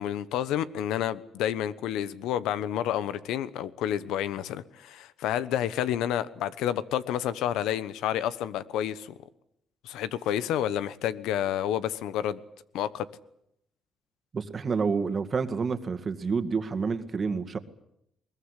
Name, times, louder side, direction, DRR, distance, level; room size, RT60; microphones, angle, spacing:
voice 1, 0.0-9.2 9.8-12.4 12.7-13.1, left 11 dB, 90° left, 16 dB, 1.2 m, -29 dB
voice 2, 14.3-17.6, right 5 dB, 40° right, 10 dB, 2.1 m, -29 dB
21.5 x 20.5 x 9.9 m, 0.75 s
cardioid pair, 90°, 0 cm